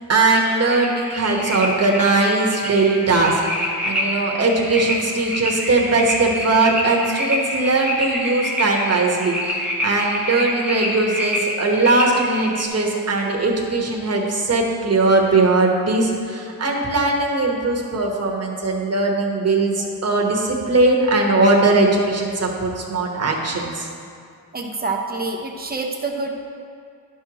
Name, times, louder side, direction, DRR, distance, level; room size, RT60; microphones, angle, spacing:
voice 1, 0.1-23.9, right 2 dB, 40° right, -1 dB, 1.2 m, -20 dB
sound 1, 0.7-12.7, left 1 dB, 5° right, 1.1 m, -27 dB
voice 2, 24.5-26.3, right 3 dB, 25° right, 2 dB, 0.8 m, -26 dB
11.0 x 6.2 x 3.0 m, 2.4 s
wide cardioid pair, 120°, 39 cm